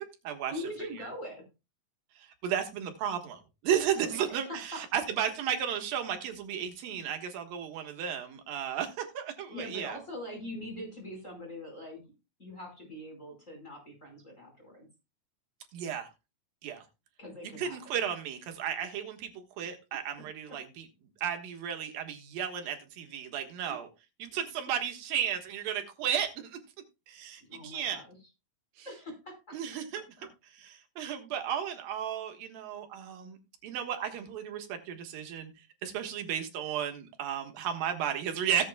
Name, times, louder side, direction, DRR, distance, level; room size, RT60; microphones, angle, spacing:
voice 1, 0.5-1.4 4.0-4.8 9.5-12.0 12.4-14.9 17.2-17.9 27.5-28.1 28.8-29.6 30.2-30.3, left 1 dB, 20° left, 5.1 m, -42 dB
voice 2, 2.4-10.0 15.7-16.1 16.6-16.8 17.4-20.9 21.2-23.9 24.2-26.6 27.1-28.0 28.8-28.9 29.5-30.0 31.0-35.5 35.8-38.7, right 9 dB, 85° right, 3.2 m, -34 dB
17.0 x 8.4 x 2.3 m
omnidirectional pair, 4.0 m